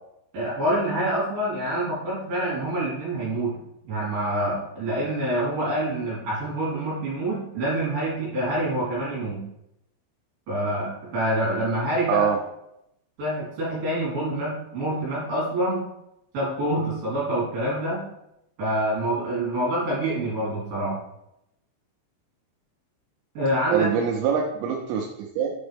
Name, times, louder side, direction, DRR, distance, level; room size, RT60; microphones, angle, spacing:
voice 1, 0.3-9.5 10.5-12.2 13.2-15.8 16.3-18.0 18.6-21.0 23.3-23.9, right 1 dB, 50° right, -8 dB, 4.5 m, -26 dB
voice 2, 12.1-12.4 23.7-25.5, right 7 dB, 85° right, 0 dB, 3.3 m, -24 dB
7.9 x 5.3 x 3.4 m, 0.83 s
omnidirectional pair, 5.8 m